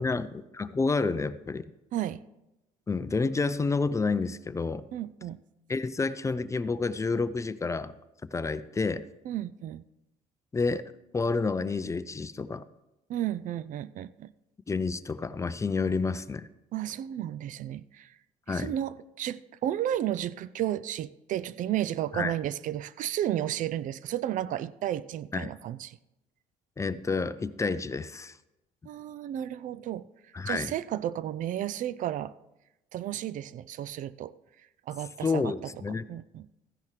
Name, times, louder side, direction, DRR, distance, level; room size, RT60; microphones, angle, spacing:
voice 1, 0.0-1.7 2.9-4.9 5.7-7.9 8.3-9.1 10.5-10.8 11.1-12.6 14.7-16.5 18.5-18.7 22.1-22.3 25.3-25.5 26.8-28.4 30.3-30.7 35.2-36.0, left 4 dB, 20° left, 0.5 m, -29 dB
voice 2, 1.9-2.2 4.9-5.4 9.3-9.8 13.1-14.3 16.7-18.2 18.5-26.0 28.9-30.1 30.5-32.3 32.9-34.4 34.9-35.5 36.1-36.5, right 12 dB, 60° right, 0.4 m, -33 dB
14.5 x 10.5 x 3.2 m
cardioid pair, 90°, 15 cm